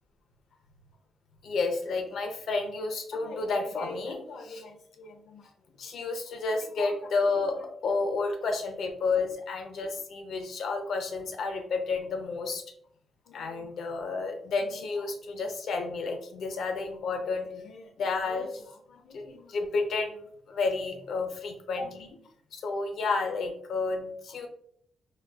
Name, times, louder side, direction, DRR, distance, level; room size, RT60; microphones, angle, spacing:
voice 1, 1.4-5.4 5.8-12.6 13.3-20.2 20.5-22.1 22.5-24.5, left 3 dB, 70° left, 5 dB, 0.5 m, -31 dB
4.0 x 2.3 x 2.3 m, 0.67 s
cardioid pair, 135°, 0 cm